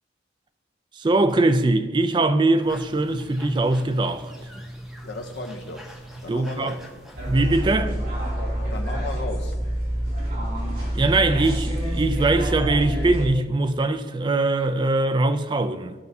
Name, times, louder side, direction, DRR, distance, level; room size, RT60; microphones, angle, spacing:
voice 1, 1.0-4.3 6.3-6.8 7.3-8.0 10.9-15.9, right 2 dB, 25° right, 0.4 m, -22 dB
sound 1, 2.6-7.6, equal, ahead, 0.8 m, -42 dB
voice 2, 5.0-5.9 6.2-6.8 8.7-9.5, left 2 dB, 75° left, 0.7 m, -34 dB
sound 2, 7.2-13.3, right 1 dB, 55° right, 2.6 m, -27 dB
14.0 x 5.3 x 2.7 m
head